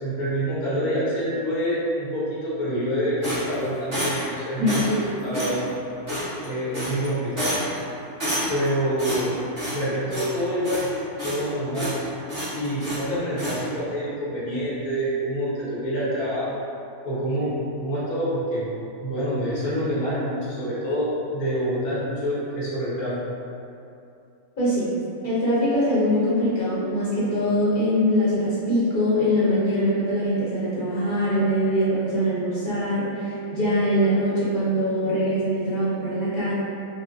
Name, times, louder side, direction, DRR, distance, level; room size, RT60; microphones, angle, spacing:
voice 1, 0.0-5.7 6.4-7.6 8.5-9.4 9.7-10.9 11.2-12.0 12.5-16.6 17.0-17.5 17.8-18.7 19.0-23.2, equal, 85° left, -8 dB, 1.6 m, -26 dB
sound 1, 3.2-4.3 4.7-5.0 5.3-5.6 6.1-6.5 6.7-7.1 7.4-7.8 8.2-8.7 9.0-9.8 10.1-10.4 10.6-11.5 11.7-12.0 12.3-13.0 13.4-13.6, equal, 20° right, 1.4 m, -29 dB
voice 2, 24.6-24.9 25.2-36.5, equal, 40° left, -10 dB, 0.9 m, -23 dB
5.3 x 2.2 x 2.6 m, 2.7 s
omnidirectional pair, 1.5 m